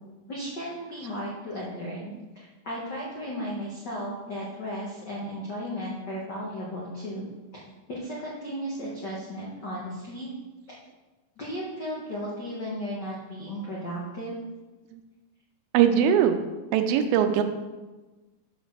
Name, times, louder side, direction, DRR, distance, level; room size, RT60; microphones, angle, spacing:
voice 1, 0.3-7.3 7.9-10.3 11.4-14.3, equal, 70° left, -5 dB, 1.0 m, -35 dB
voice 2, 15.7-16.3 16.7-17.4, right 9 dB, 90° right, 8 dB, 2.5 m, -21 dB
6.4 x 5.2 x 6.3 m, 1.2 s
omnidirectional pair, 4.1 m